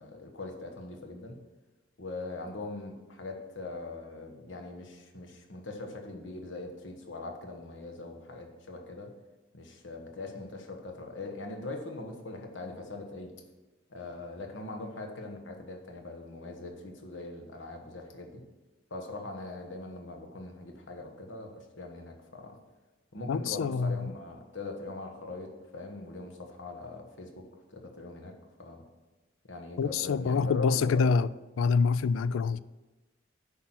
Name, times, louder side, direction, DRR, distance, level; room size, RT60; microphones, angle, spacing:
voice 1, 0.0-1.4 2.0-9.1 9.5-13.3 13.9-18.4 18.9-22.6 23.1-27.4 27.7-28.3 28.6-28.8 29.5-31.1, left 2 dB, 75° left, 1.3 m, -41 dB
voice 2, 23.3-24.1 29.8-31.3 31.6-32.6, left 5 dB, 90° left, 0.4 m, -26 dB
8.4 x 5.8 x 6.0 m
head